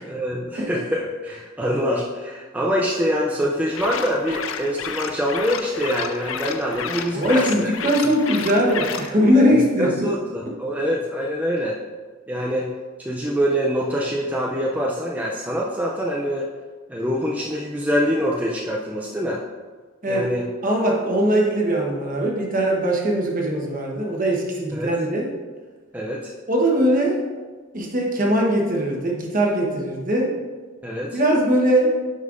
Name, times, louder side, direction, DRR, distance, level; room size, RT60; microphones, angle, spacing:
voice 1, 0.1-7.7 9.5-11.8 12.3-12.7 13.0-16.5 16.9-19.4 20.1-20.4 24.7-24.9 25.9-26.3 30.8-31.2, equal, 10° right, -3 dB, 0.5 m, -25 dB
Alien Alarm, 3.7-9.1, left 7 dB, 85° left, 0.5 m, -31 dB
voice 2, 7.1-10.1 20.0-20.3 20.6-25.3 26.5-27.3 27.7-30.3 31.1-32.0, equal, 45° right, -1 dB, 1.2 m, -20 dB
9.5 x 5.5 x 2.6 m, 1.4 s
head